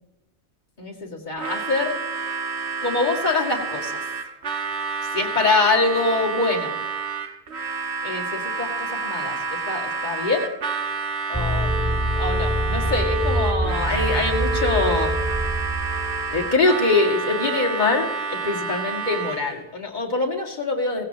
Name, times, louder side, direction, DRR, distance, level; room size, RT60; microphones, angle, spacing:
voice 1, 0.8-2.0 2.8-4.0 5.1-6.8 8.0-10.5 11.3-15.1 16.3-21.0, left 3 dB, 45° left, 0 dB, 2.3 m, -24 dB
Harmonica, 1.3-19.6, right 4 dB, 85° right, 1.5 m, -29 dB
sound 1, 11.3-16.3, right 1 dB, 10° right, 0.6 m, -24 dB
17.0 x 16.5 x 2.9 m, 0.96 s
omnidirectional pair, 1.1 m